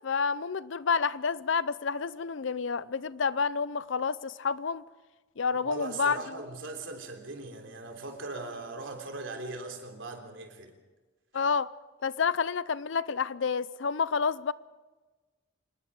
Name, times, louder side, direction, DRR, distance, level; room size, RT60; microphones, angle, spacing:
voice 1, 0.0-4.8 5.4-6.2 11.3-11.7 12.0-14.5, left 5 dB, 70° left, 0.6 m, -29 dB
voice 2, 5.6-10.7 11.3-11.4, right 3 dB, 75° right, 3.4 m, -39 dB
26.0 x 20.5 x 4.9 m
head